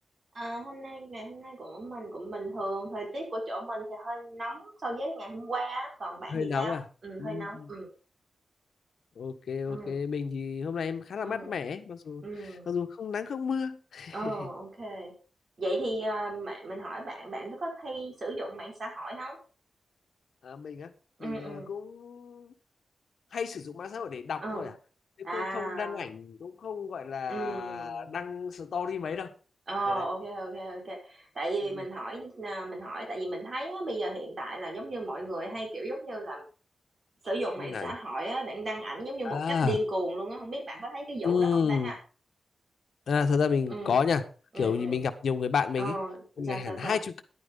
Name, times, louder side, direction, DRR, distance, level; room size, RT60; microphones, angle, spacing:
voice 1, 0.3-6.8 7.0-7.9 9.7-10.0 11.2-11.6 12.2-12.7 14.1-15.1 15.6-19.4 21.2-21.7 24.4-24.7 25.2-26.1 27.3-28.2 29.7-36.4 37.2-42.0 43.7-44.0 44.5-45.0 45.8-47.0, right 1 dB, 45° right, 1 dB, 5.2 m, -35 dB
voice 2, 6.3-6.8 7.2-7.7 9.2-12.2 12.7-14.5 20.4-20.9 21.2-22.5 23.3-24.7 25.2-29.3 29.9-30.0 37.6-37.9 39.2-39.8 41.2-41.9 43.1-44.2 44.5-46.0 46.4-47.2, left 6 dB, 80° left, 9 dB, 1.4 m, -31 dB
11.0 x 9.7 x 5.3 m, 0.36 s
wide cardioid pair, 130°, 0 cm